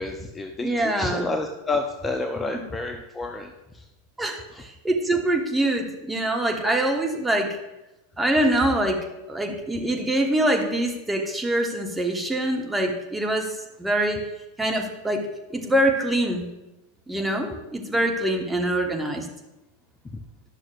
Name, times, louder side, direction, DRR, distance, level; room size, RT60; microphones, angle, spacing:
voice 1, 0.0-0.7 1.0-3.8 4.5-4.6 20.1-20.2, left 3 dB, 15° left, 4 dB, 0.6 m, -30 dB
voice 2, 0.6-1.3 2.5-2.6 4.2-7.6 8.2-13.5 13.8-14.2 14.6-16.5 17.1-19.3, right 1 dB, 10° right, 2 dB, 1.2 m, -24 dB
11.0 x 6.2 x 2.5 m, 0.99 s
hypercardioid pair, 95°, 0 cm